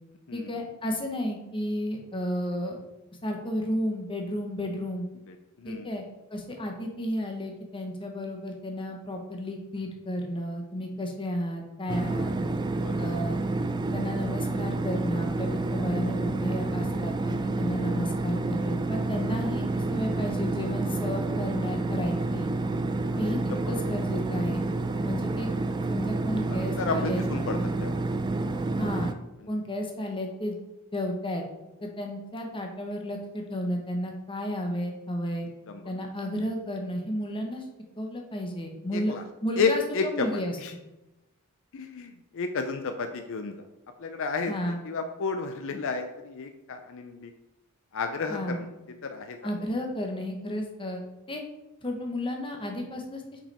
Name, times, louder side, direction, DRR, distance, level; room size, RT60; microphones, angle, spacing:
voice 1, 0.3-2.8 3.2-5.1 5.6-6.0 6.3-12.3 13.0-13.4 13.9-22.5 23.2-24.6 25.0-25.5 25.9-27.2 27.5-27.7 28.8-29.1 29.5-30.6 30.9-31.4 31.8-35.5 35.8-37.6 38.0-39.1 39.4-40.6 44.5-44.8 48.3-48.6 49.4-51.4 51.8-53.4, equal, 25° left, 2 dB, 1.0 m, -32 dB
sound 1, 11.9-29.1, right 2 dB, 20° right, 0.4 m, -29 dB
voice 2, 26.5-28.0 35.7-35.8 38.9-39.2 39.6-40.3 40.6-40.7 41.7-43.5 44.0-44.5 44.8-47.3 47.9-48.7 49.0-49.4, left 4 dB, 65° left, 7 dB, 0.5 m, -31 dB
5.8 x 5.4 x 4.2 m, 0.98 s
head